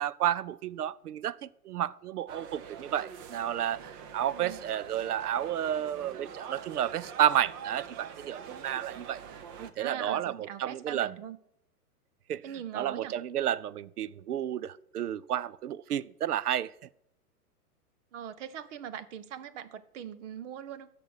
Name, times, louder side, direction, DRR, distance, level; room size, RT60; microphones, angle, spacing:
voice 1, 0.0-9.2 9.6-11.1 12.3-12.4 12.7-16.7, right 10 dB, 75° right, 0.7 m, -31 dB
sound 1, 2.3-9.7, right 7 dB, 15° right, 0.4 m, -45 dB
voice 2, 9.8-11.4 12.4-13.1 18.1-20.9, right 9 dB, 50° right, 1.0 m, -41 dB
11.5 x 7.1 x 6.3 m
hypercardioid pair, 115°, 46 cm